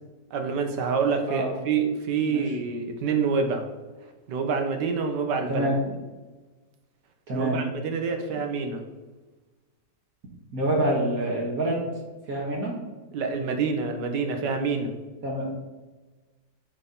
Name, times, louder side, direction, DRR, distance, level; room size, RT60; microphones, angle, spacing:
voice 1, 0.3-3.7 4.3-5.7 7.3-8.8 13.1-15.0, right 5 dB, 65° right, 5 dB, 1.5 m, -27 dB
voice 2, 7.3-7.6 10.5-11.8 12.3-12.8 15.2-15.5, right 1 dB, 50° right, -3 dB, 1.8 m, -26 dB
8.7 x 4.1 x 3.8 m, 1.2 s
omnidirectional pair, 2.1 m